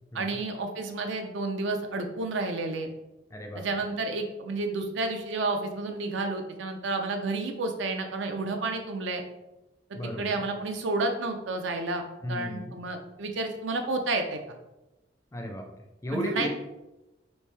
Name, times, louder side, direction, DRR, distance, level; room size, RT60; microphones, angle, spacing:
voice 1, 0.1-2.9 3.6-9.2 10.2-12.0 12.3-14.4 16.1-16.5, right 3 dB, 80° right, 5 dB, 0.5 m, -30 dB
voice 2, 3.3-3.6 9.9-10.4 12.2-12.8 15.3-15.6 16.0-16.5, equal, 15° left, 2 dB, 0.4 m, -34 dB
3.3 x 2.6 x 3.3 m, 0.99 s
head